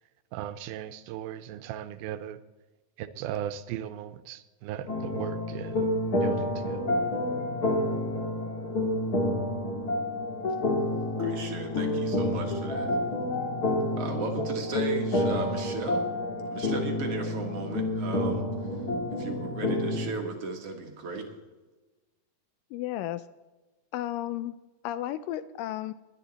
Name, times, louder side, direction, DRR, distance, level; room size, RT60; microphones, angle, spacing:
voice 1, 0.3-2.4 3.0-5.9 6.1-6.9, right 11 dB, 85° right, 11 dB, 2.5 m, -37 dB
sound 1, 4.9-20.1, left 1 dB, 35° left, 1.8 m, -29 dB
voice 2, 11.2-13.0 14.0-16.1 16.5-18.4 19.1-21.2, right 4 dB, 50° right, 2 dB, 2.2 m, -36 dB
voice 3, 22.7-23.2 23.9-24.5 24.8-25.9, left 13 dB, 80° left, 14 dB, 2.0 m, -33 dB
20.5 x 11.0 x 4.1 m, 1.2 s
omnidirectional pair, 4.2 m